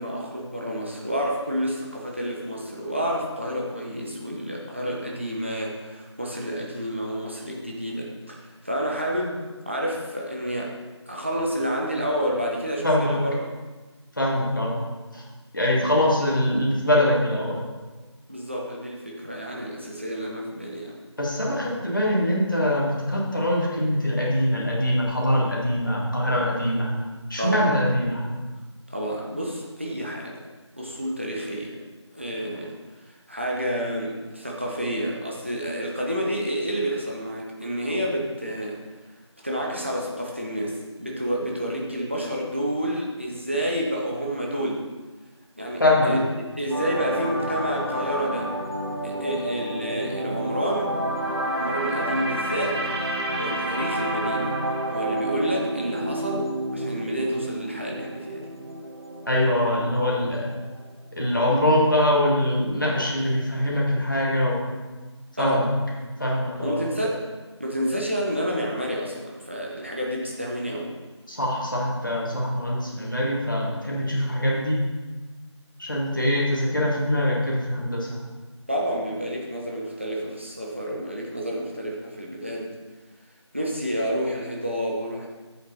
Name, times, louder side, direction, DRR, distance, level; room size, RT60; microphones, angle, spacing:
voice 1, 0.0-10.7 11.1-13.3 15.7-15.8 18.3-20.9 27.4-27.7 28.9-30.5 30.8-31.8 32.1-32.8 33.3-38.8 39.4-44.8 45.6-46.2 46.6-48.5 49.0-50.9 51.5-52.8 53.4-54.6 54.8-56.5 56.7-58.5 65.4-65.7 66.6-67.2 67.6-70.9 78.7-82.7 83.5-85.3, equal, 25° right, -1 dB, 0.9 m, -29 dB
voice 2, 12.8-13.2 14.2-14.8 15.1-15.2 15.5-17.6 21.2-26.9 27.3-28.2 45.8-46.1 59.3-60.4 61.1-64.6 65.3-65.7 66.2-66.8 71.3-74.8 75.8-78.2, left 1 dB, 45° left, -4 dB, 2.0 m, -23 dB
sound 1, 46.7-60.9 61.2-61.4, right 1 dB, 60° right, 1.6 m, -30 dB
7.9 x 6.5 x 4.1 m, 1.3 s
figure-of-eight pair, 175°, 15 cm